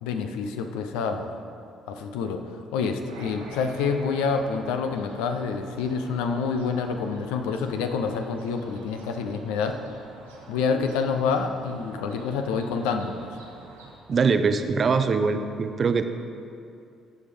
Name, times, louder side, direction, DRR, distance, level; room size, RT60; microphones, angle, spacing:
voice 1, 0.0-1.4 1.9-9.8 10.5-13.2, left 5 dB, 75° left, 6 dB, 0.6 m, -27 dB
sound 1, 3.1-13.9, right 2 dB, 90° right, 1.3 m, -47 dB
voice 2, 14.1-16.0, right 5 dB, 45° right, 9 dB, 0.6 m, -22 dB
14.5 x 5.0 x 5.2 m, 2.5 s
hypercardioid pair, 50°, 0 cm